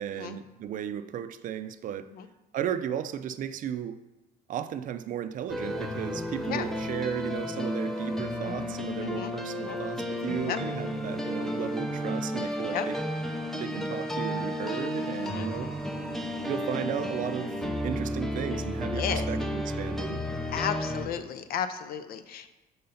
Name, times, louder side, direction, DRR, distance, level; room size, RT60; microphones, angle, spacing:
voice 1, 0.0-2.1 2.5-4.0 4.5-13.0 13.6-15.7 16.5-20.2, right 9 dB, 50° right, 11 dB, 0.4 m, -35 dB
sound 1, 5.5-21.1, equal, ahead, 0.6 m, -32 dB
voice 2, 9.0-9.3 9.6-9.8 10.5-10.6 12.7-12.9 15.2-15.5 18.9-19.3 20.5-22.5, left 9 dB, 60° left, 10 dB, 0.5 m, -33 dB
5.4 x 3.8 x 5.5 m, 1.1 s
cardioid pair, 110°, 17 cm